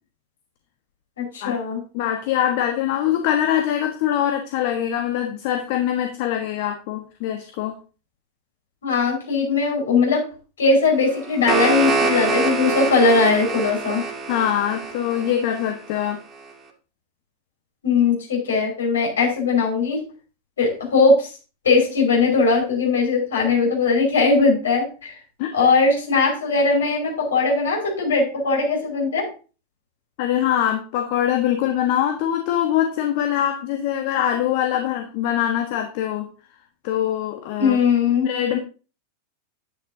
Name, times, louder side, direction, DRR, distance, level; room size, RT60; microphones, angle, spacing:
voice 1, 1.2-1.8 8.8-10.3 10.6-14.0 17.8-20.0 20.6-21.3 21.6-25.1 25.5-29.3 37.6-38.3, left 4 dB, 65° left, 0 dB, 5.3 m, -19 dB
voice 2, 1.9-7.7 14.3-16.2 25.4-25.5 30.2-36.3 36.8-37.8 38.2-38.6, left 10 dB, 50° left, 4 dB, 1.3 m, -23 dB
sound 1, 11.1-16.1, right 4 dB, 15° right, 2.1 m, -25 dB
11.0 x 9.9 x 2.8 m, 0.35 s
figure-of-eight pair, 90°, 0 cm